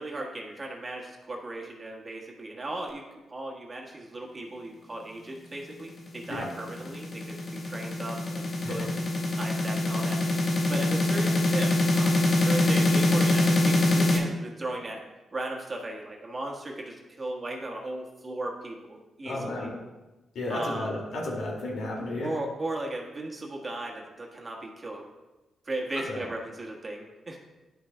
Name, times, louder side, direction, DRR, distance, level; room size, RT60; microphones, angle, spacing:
voice 1, 0.0-8.9 9.4-15.0 15.3-19.7 20.5-20.9 22.2-25.1 25.6-27.4, right 2 dB, 30° right, -1 dB, 1.4 m, -36 dB
sound 1, 6.1-14.2, left 2 dB, 55° left, 1.3 m, -24 dB
voice 2, 19.2-19.7 20.3-22.3 26.1-26.3, left 1 dB, 75° left, -2 dB, 2.2 m, -33 dB
10.5 x 6.0 x 2.2 m, 1.1 s
cardioid pair, 90°, 0 cm